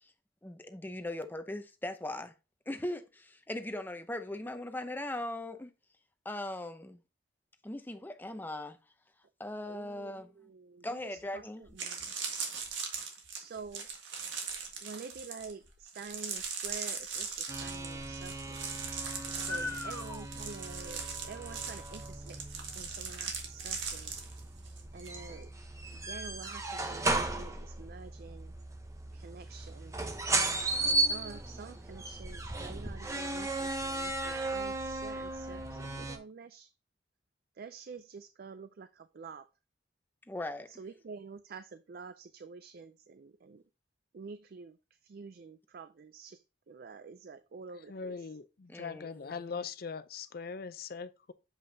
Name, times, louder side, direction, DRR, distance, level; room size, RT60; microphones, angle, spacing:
voice 1, 0.4-2.3 2.7-5.7 6.2-7.0 7.6-8.8 9.4-10.3 10.8-11.7 19.5-20.2 40.3-40.7 48.7-49.7, left 1 dB, 10° left, 0.6 m, -39 dB
voice 2, 9.7-11.4 11.7-12.1 13.3-13.9 14.8-18.6 19.3-22.4 22.8-24.1 24.9-25.5 25.9-28.5 29.1-30.0 30.8-36.7 37.6-39.5 40.8-43.6 44.1-44.8 45.0-46.4 46.7-48.3, right 4 dB, 55° right, 0.4 m, -48 dB
sound 1, 11.2-11.3 11.7-25.2 25.4-25.8, right 6 dB, 85° right, 1.7 m, -40 dB
sound 2, 17.5-36.2, right 2 dB, 15° right, 0.8 m, -36 dB
voice 3, 47.9-51.3, left 5 dB, 55° left, 0.5 m, -41 dB
7.3 x 5.4 x 2.7 m
head